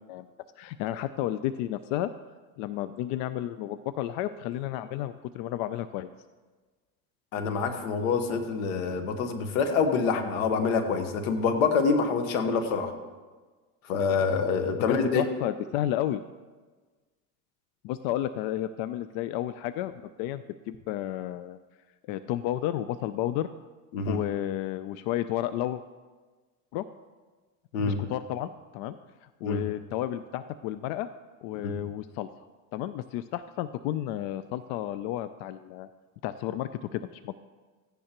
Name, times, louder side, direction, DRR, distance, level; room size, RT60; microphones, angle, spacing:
voice 1, 0.6-2.1 2.6-6.1 14.7-16.2 17.8-21.6 22.1-23.5 24.1-25.8 26.7-26.9 27.8-29.0 29.4-31.1 31.4-32.3 32.7-35.9 36.2-37.4, left 13 dB, 60° left, 13 dB, 0.5 m, -32 dB
voice 2, 7.3-12.9 13.9-15.2 23.9-24.2 27.7-28.0 29.4-29.6 31.5-31.8, left 5 dB, 90° left, 6 dB, 1.4 m, -26 dB
15.0 x 10.0 x 3.0 m, 1.3 s
supercardioid pair, 110°, 40 cm